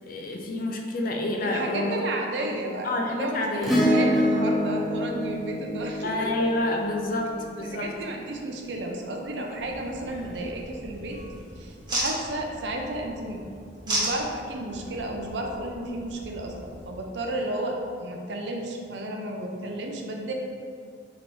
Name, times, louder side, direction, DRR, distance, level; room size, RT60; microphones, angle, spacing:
voice 1, 0.0-2.0 2.4-2.5 2.8-3.9 6.0-8.0, left 1 dB, 50° left, 1 dB, 0.5 m, -28 dB
voice 2, 1.4-6.3 7.7-11.2 11.6-13.4 13.8-20.3, right 1 dB, 70° right, 1 dB, 0.5 m, -32 dB
Acoustic guitar / Strum, 3.6-8.2 10.1-10.2, equal, ahead, 0.7 m, -26 dB
sound 1, 9.6-16.9, right 1 dB, 25° right, 1.1 m, -36 dB
4.6 x 3.0 x 2.6 m, 2.2 s
head